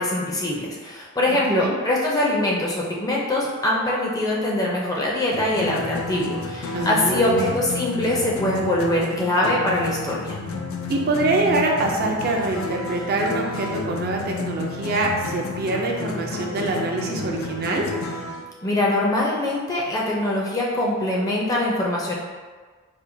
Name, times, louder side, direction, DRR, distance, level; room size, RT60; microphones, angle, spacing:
voice 1, 0.0-10.4 18.6-22.2, left 1 dB, 15° left, -4 dB, 0.4 m, -23 dB
voice 2, 1.3-1.7 6.7-7.4 10.9-17.9, right 2 dB, 45° right, 0 dB, 0.4 m, -24 dB
sound 1, 5.3-18.4, left 3 dB, 80° left, 0.4 m, -31 dB
4.2 x 2.2 x 2.6 m, 1.4 s
head